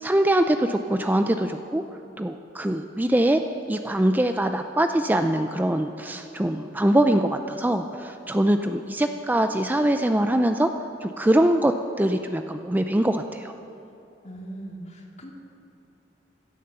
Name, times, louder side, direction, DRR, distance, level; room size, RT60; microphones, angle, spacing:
voice 1, 0.0-1.8 2.2-3.4 3.7-10.7 11.0-11.7 12.0-13.5, right 1 dB, 10° right, 7 dB, 0.4 m, -23 dB
voice 2, 14.2-15.3, right 1 dB, 40° left, 0 dB, 2.3 m, -39 dB
16.5 x 12.5 x 6.9 m, 3.0 s
head